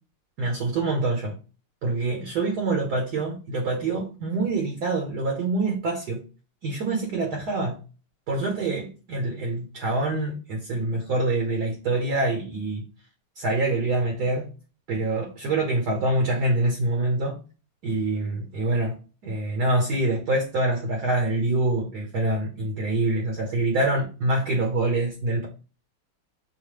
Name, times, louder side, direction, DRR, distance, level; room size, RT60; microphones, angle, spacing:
voice 1, 0.4-1.4 1.8-6.2 6.6-7.8 8.3-12.9 13.4-14.5 14.9-17.4 17.8-19.0 19.2-25.5, right 2 dB, 55° right, 1.4 m, -25 dB
6.4 x 2.3 x 3.3 m
omnidirectional pair, 2.4 m